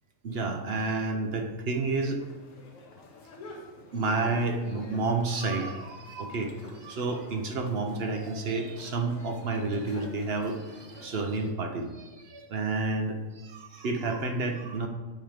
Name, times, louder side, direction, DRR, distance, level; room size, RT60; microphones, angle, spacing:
voice 1, 0.2-2.2 3.9-14.9, right 3 dB, 55° right, 5 dB, 0.9 m, -30 dB
sound 1, 2.2-11.5, left 3 dB, 90° left, 1.4 m, -50 dB
sound 2, 4.0-5.0 6.4-7.2 9.4-10.2, right 1 dB, 55° left, 1.9 m, -45 dB
8.7 x 3.5 x 5.0 m, 1.3 s
omnidirectional pair, 1.4 m